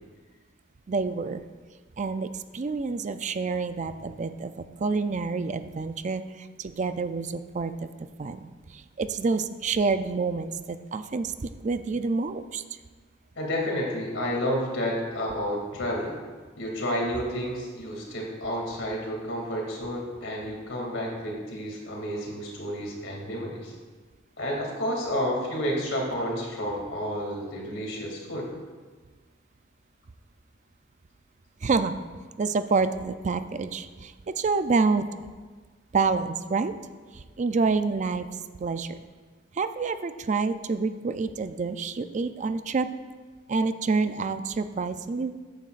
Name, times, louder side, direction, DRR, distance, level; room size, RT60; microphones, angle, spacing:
voice 1, 0.9-1.4 2.0-7.9 8.2-12.6 31.6-31.9 32.4-35.1 35.9-36.7 37.1-38.3 38.6-39.0 39.5-42.9 43.5-45.3, right 4 dB, 40° right, 11 dB, 0.4 m, -28 dB
voice 2, 13.4-16.2 16.6-23.7 24.4-28.5, equal, 90° left, -1 dB, 2.5 m, -30 dB
14.0 x 9.4 x 2.5 m, 1.4 s
head